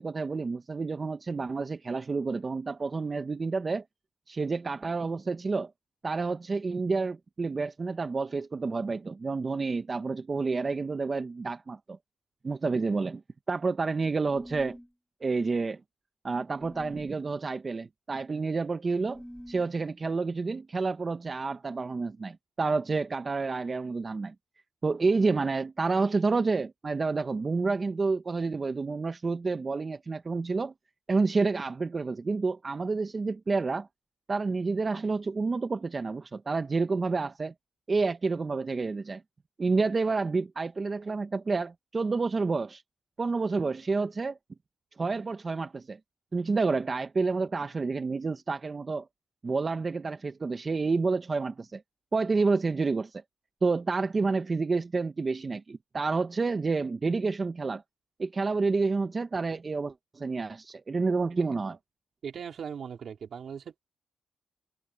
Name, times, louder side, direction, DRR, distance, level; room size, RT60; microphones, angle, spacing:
voice 1, 0.0-3.8 4.3-5.7 6.0-12.0 12.4-13.2 13.5-14.8 15.2-15.8 16.2-24.3 24.8-30.7 31.1-33.9 34.3-37.5 37.9-39.2 39.6-42.8 43.2-44.4 45.0-46.0 46.3-49.1 49.4-51.8 52.1-53.2 53.6-57.8 58.2-61.8, right 4 dB, 30° right, 0.8 m, -29 dB
sound 1, 14.3-14.9 16.6-17.1 19.0-19.7, equal, ahead, 2.4 m, -46 dB
voice 2, 62.2-63.8, right 7 dB, 60° right, 3.2 m, -39 dB
cardioid pair, 120°, 0 cm